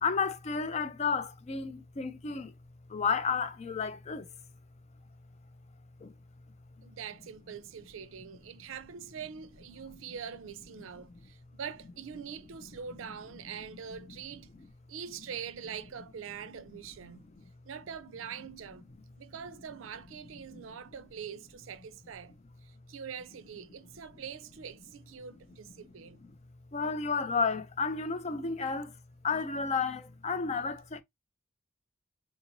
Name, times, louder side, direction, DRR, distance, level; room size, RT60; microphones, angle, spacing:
voice 1, 0.0-2.5 2.9-4.3 6.0-6.1 26.7-28.9 29.2-31.0, left 5 dB, 35° left, 0.4 m, -32 dB
voice 2, 6.8-14.5 14.9-17.3 17.6-18.8 19.2-22.3 22.6-26.2, right 7 dB, 80° right, 0.4 m, -44 dB
3.7 x 2.9 x 2.5 m
head